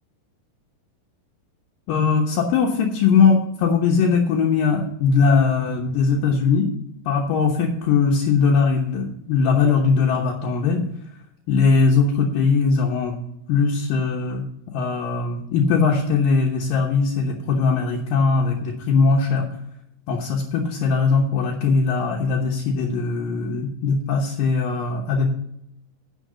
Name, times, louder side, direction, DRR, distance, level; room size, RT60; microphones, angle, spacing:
voice 1, 1.9-6.7 7.1-10.8 11.5-13.2 13.5-14.4 14.7-19.5 20.1-25.3, left 5 dB, 75° left, -1 dB, 2.8 m, -20 dB
10.5 x 6.0 x 7.4 m, 0.77 s
omnidirectional pair, 4.1 m